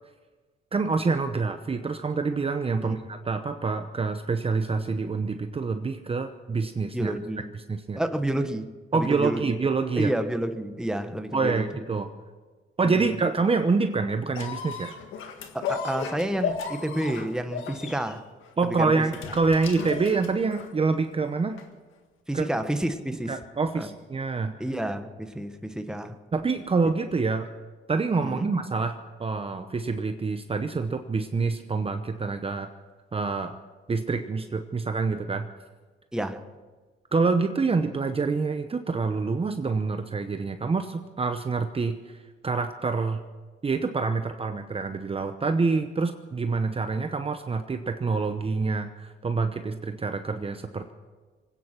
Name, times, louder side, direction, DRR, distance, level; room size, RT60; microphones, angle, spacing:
voice 1, 0.7-7.1 7.7-8.0 8.9-10.1 11.3-12.1 12.8-14.9 18.6-21.6 22.3-22.5 23.3-24.5 26.3-27.5 27.9-32.7 33.1-33.5 33.9-35.5 37.1-42.0 42.4-43.2 43.6-50.9, right 4 dB, 30° right, 8 dB, 0.9 m, -26 dB
voice 2, 6.9-7.4 7.9-9.4 10.0-11.7 12.8-13.1 15.5-18.2 18.6-19.0 22.3-23.4 23.7-23.9 24.6-26.2 28.2-28.5 36.1-36.4, right 1 dB, 5° right, 7 dB, 1.2 m, -30 dB
sound 1, 14.3-20.8 21.6-21.7, left 6 dB, 80° left, 1.7 m, -35 dB
24.0 x 9.5 x 6.0 m, 1.4 s
cardioid pair, 90°, 20 cm